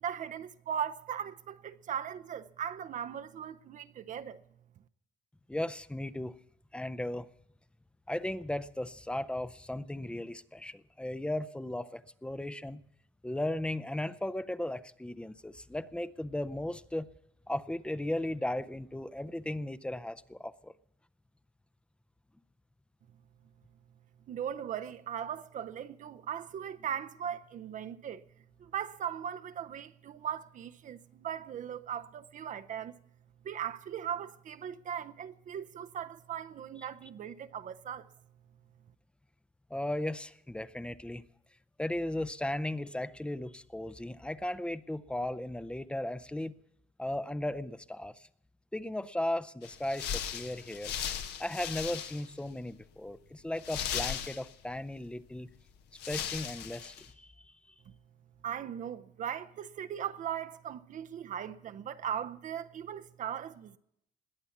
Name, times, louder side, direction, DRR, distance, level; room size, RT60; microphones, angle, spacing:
voice 1, 0.0-4.4 24.3-28.2 28.6-32.9 33.4-38.1 57.9-58.0 58.4-63.8, right 9 dB, 50° right, 0.6 m, -38 dB
voice 2, 5.5-6.3 6.7-7.3 8.1-12.8 13.2-17.1 17.5-20.7 39.7-41.2 41.8-46.6 47.0-48.3 48.7-50.9 51.4-55.5 56.0-57.5, left 1 dB, 5° left, 0.5 m, -36 dB
sound 1, 49.6-52.4 52.7-52.8 53.6-54.8 55.6-55.7 56.0-57.1, left 9 dB, 80° left, 1.3 m, -37 dB
20.5 x 8.4 x 7.1 m
cardioid pair, 110°, 17 cm